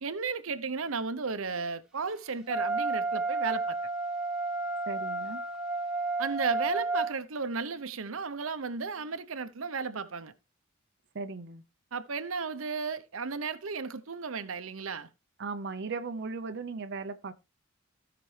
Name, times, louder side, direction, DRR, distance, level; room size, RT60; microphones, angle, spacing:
voice 1, 0.0-3.8 6.2-10.3 11.9-15.1, right 4 dB, 90° right, 0.8 m, -34 dB
Wind instrument woodwind instrument, 2.5-7.1, right 3 dB, 5° right, 1.7 m, -31 dB
voice 2, 4.9-5.4 11.1-11.6 15.4-17.3, right 4 dB, 55° right, 0.7 m, -37 dB
16.0 x 6.0 x 3.3 m
head